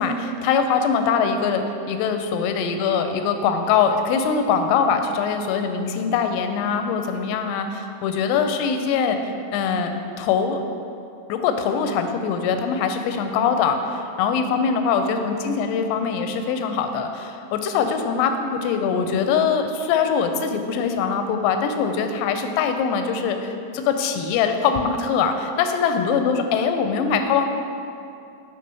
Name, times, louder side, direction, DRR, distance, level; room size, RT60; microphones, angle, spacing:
voice 1, 0.0-7.7 8.0-9.9 10.2-10.6 11.3-27.5, left 6 dB, 90° left, 6 dB, 3.2 m, -22 dB
7.9 x 3.3 x 5.3 m, 2.6 s
omnidirectional pair, 5.9 m